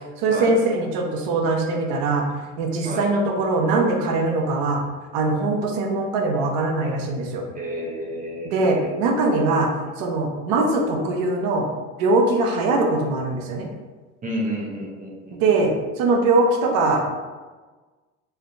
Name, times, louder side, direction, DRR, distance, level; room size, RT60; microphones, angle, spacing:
voice 1, 0.2-2.3 2.6-4.8 5.1-7.4 8.5-9.7 10.0-11.7 12.0-13.7 15.4-17.0, right 2 dB, 65° right, 2 dB, 0.6 m, -21 dB
voice 2, 7.5-8.9 14.2-15.4, equal, 20° right, -3 dB, 0.7 m, -30 dB
2.5 x 2.1 x 2.5 m, 1.3 s
hypercardioid pair, 65°, 38 cm